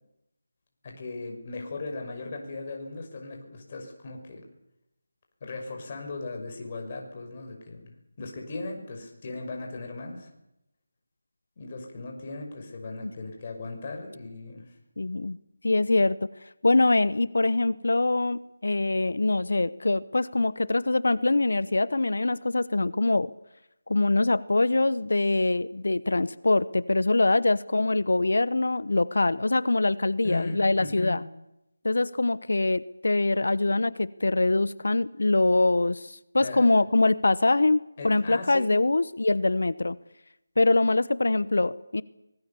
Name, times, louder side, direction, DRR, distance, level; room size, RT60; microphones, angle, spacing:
voice 1, 0.8-4.5 5.4-10.3 11.6-14.7 30.2-31.2 36.4-36.7 38.0-38.8, left 3 dB, 30° left, 2 dB, 5.7 m, -37 dB
voice 2, 15.0-15.4 15.6-16.2 16.6-23.3 23.9-31.2 31.8-40.0 40.6-42.0, left 2 dB, 75° left, 18 dB, 1.0 m, -24 dB
24.0 x 21.0 x 7.1 m, 0.84 s
figure-of-eight pair, 170°, 0 cm